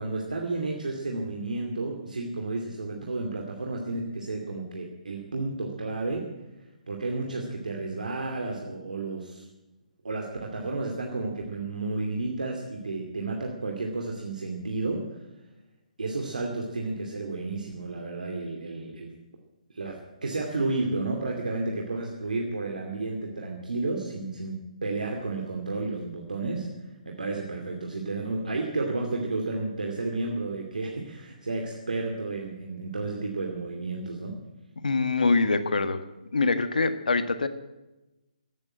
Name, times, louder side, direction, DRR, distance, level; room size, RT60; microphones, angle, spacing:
voice 1, 0.0-6.4 6.9-9.4 10.0-15.2 16.0-19.1 19.7-26.7 27.1-34.4, right 3 dB, 85° right, 0 dB, 2.6 m, -32 dB
voice 2, 34.8-36.0 36.3-37.5, left 3 dB, 85° left, 10 dB, 1.5 m, -24 dB
14.5 x 9.6 x 8.7 m, 1.0 s
hypercardioid pair, 155°, 4 cm